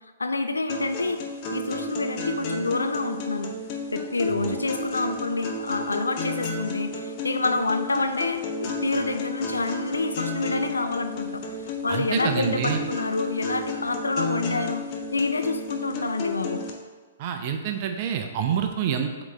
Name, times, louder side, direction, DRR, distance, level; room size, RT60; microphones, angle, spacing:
voice 1, 0.2-1.2 1.5-3.5 3.9-14.9 15.1-16.6, left 3 dB, 85° left, 8 dB, 0.5 m, -28 dB
sound 1, 0.7-16.7, left 3 dB, 40° left, 0.9 m, -32 dB
voice 2, 11.9-12.8 17.2-19.2, right 8 dB, 45° right, 5 dB, 0.6 m, -27 dB
7.9 x 4.0 x 3.3 m, 1.4 s
figure-of-eight pair, 115°, 0 cm